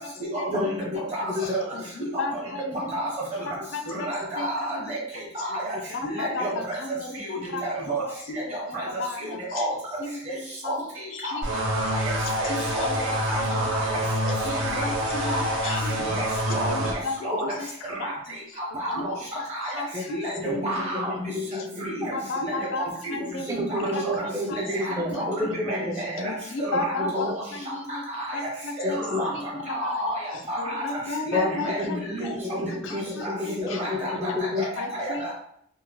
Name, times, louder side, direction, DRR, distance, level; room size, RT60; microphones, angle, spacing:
voice 1, 0.5-1.0 1.2-1.5 7.5-7.6 17.4-17.5 19.9-20.0 20.4-22.1 23.2-26.3 26.9-27.3 28.8-29.2 31.3-31.5 31.8-31.9 32.4-34.7, left 2 dB, 15° right, 1 dB, 0.4 m, -30 dB
voice 2, 1.1-1.6 2.9-3.1 4.1-5.0 5.3-5.8 6.0-6.8 7.2-7.4 7.9-8.0 8.3-8.8 9.5-9.7 10.6-10.8 11.3-11.7 12.4-12.5 12.7-13.8 14.7-14.8 15.2-15.5 16.1-16.2 16.5-16.7 17.2-17.4 18.0-18.1 18.8-19.1 19.5-19.7 20.1-20.2 20.6-21.1 21.8-21.9 22.4-22.5 22.8-23.1 23.7-24.2 24.5-24.6 25.4-25.8 26.0-26.1 26.8-27.3 28.1-28.2 28.8-29.3 29.7-30.2 30.5-30.8 31.3-32.3 33.2-33.3 33.8-34.1 34.6-34.7 34.9-35.3, right 1 dB, 35° right, -5 dB, 0.8 m, -30 dB
voice 3, 2.0-2.6 3.7-4.1 4.4-4.5 5.9-6.6 7.0-7.1 7.5-7.6 8.1-8.2 9.0-9.4 10.0-10.2 10.6-10.7 11.2-11.4 12.4-13.5 14.4-15.9 16.7-17.1 18.0-18.1 19.0-19.1 19.8-19.9 20.5-20.6 22.1-22.9 23.3-23.6 23.9-24.6 26.2-27.3 27.7-28.0 28.3-29.0 29.4-29.5 29.8-30.0 30.6-32.0 32.6-33.3 33.7-33.8 34.1-34.2 34.8-35.3, left 3 dB, 75° left, 5 dB, 0.4 m, -33 dB
sound 1, 11.4-16.9, equal, 75° right, 0.8 m, -27 dB
2.7 x 2.0 x 3.0 m, 0.68 s
head